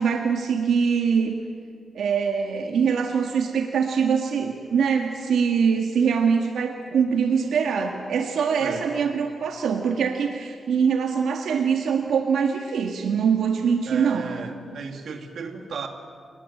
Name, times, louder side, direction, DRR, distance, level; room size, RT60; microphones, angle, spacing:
voice 1, 0.0-1.3 1.9-14.3, right 6 dB, 85° right, 3 dB, 1.8 m, -23 dB
voice 2, 13.9-15.9, right 5 dB, 60° right, 4 dB, 2.5 m, -34 dB
29.5 x 19.5 x 8.8 m, 2.1 s
wide cardioid pair, 175°, 0 cm